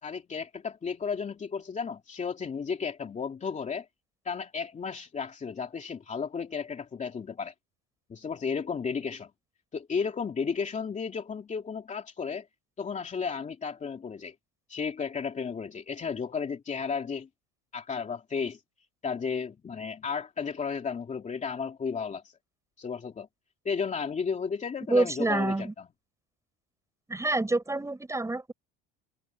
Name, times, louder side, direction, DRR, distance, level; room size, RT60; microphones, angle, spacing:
voice 1, 0.0-3.9 4.2-7.5 8.1-9.3 9.7-12.5 12.8-14.3 14.7-17.3 17.7-18.6 19.0-22.4 22.8-23.3 23.6-25.9, left 5 dB, 25° left, 2.7 m, -33 dB
voice 2, 24.9-25.7 27.1-28.5, right 2 dB, 10° right, 8.0 m, -27 dB
cardioid pair, 135°, 32 cm